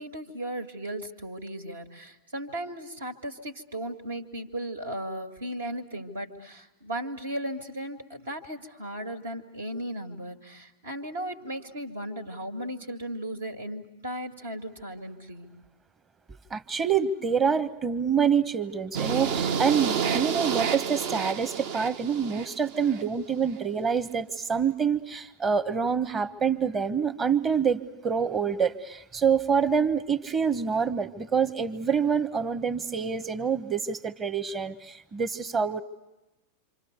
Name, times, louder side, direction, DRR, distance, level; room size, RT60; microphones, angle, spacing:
voice 1, 0.0-15.5, right 1 dB, 70° right, 5 dB, 2.5 m, -36 dB
voice 2, 16.5-35.8, right 6 dB, 20° right, 12 dB, 1.2 m, -26 dB
sound 1, 18.9-23.0, right 7 dB, 50° right, 0.8 m, -29 dB
27.5 x 27.0 x 6.8 m, 1.0 s
figure-of-eight pair, 90°, 0 cm